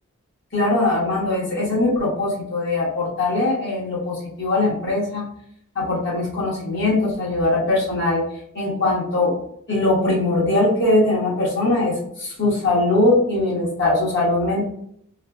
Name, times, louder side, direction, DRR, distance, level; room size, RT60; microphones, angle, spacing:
voice 1, 0.5-5.2 5.7-8.2 8.5-9.3 9.7-14.7, left 2 dB, 55° left, -6 dB, 1.3 m, -21 dB
3.2 x 2.0 x 3.4 m, 0.69 s
head